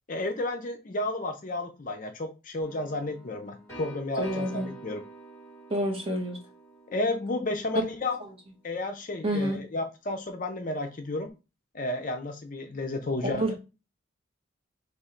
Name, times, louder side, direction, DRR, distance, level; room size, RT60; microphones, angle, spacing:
voice 1, 0.1-5.0 6.9-8.2 8.6-11.3 11.7-13.5, left 2 dB, 40° left, 5 dB, 0.5 m, -32 dB
sound 1, 2.6-8.3, right 3 dB, 15° left, 2.2 m, -47 dB
voice 2, 4.2-4.7 5.7-6.4 9.2-9.6 13.2-13.6, equal, 25° right, 0 dB, 1.3 m, -28 dB
3.6 x 2.9 x 4.3 m, 0.29 s
head